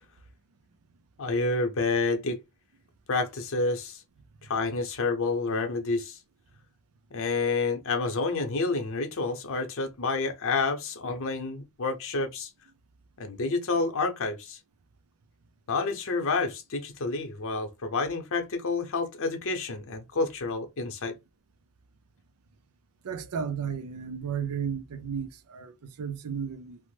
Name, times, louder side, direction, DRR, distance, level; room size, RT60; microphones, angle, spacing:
voice 1, 1.2-2.4 3.1-4.0 4.4-6.2 7.1-12.5 13.2-14.6 15.7-21.2, left 3 dB, 65° left, 0.7 m, -29 dB
voice 2, 23.0-26.8, right 7 dB, 85° right, 0.5 m, -34 dB
3.0 x 2.0 x 3.2 m
head